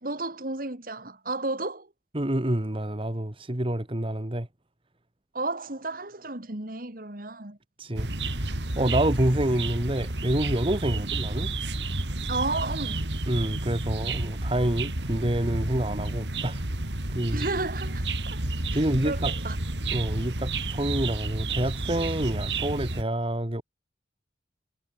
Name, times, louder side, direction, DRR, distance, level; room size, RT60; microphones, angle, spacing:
voice 1, 0.0-1.9 5.3-7.6 10.9-11.1 12.3-13.1 17.3-19.6, right 2 dB, 55° right, 2.8 m, -33 dB
voice 2, 2.1-4.5 7.8-11.5 13.3-16.6 17.1-17.5 18.7-19.3 19.9-23.6, right 1 dB, 30° right, 1.8 m, -27 dB
sound 1, 8.0-23.0, right 2 dB, 85° right, 3.4 m, -31 dB
head